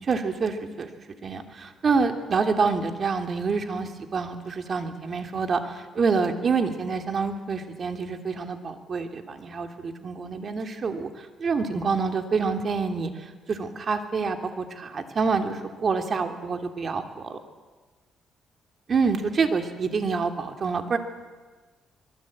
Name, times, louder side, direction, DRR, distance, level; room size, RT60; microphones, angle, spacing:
voice 1, 0.1-0.9 1.2-17.4 18.9-21.0, right 4 dB, 45° right, 6 dB, 3.1 m, -27 dB
25.0 x 22.5 x 8.8 m, 1.4 s
cardioid pair, 90°, 0 cm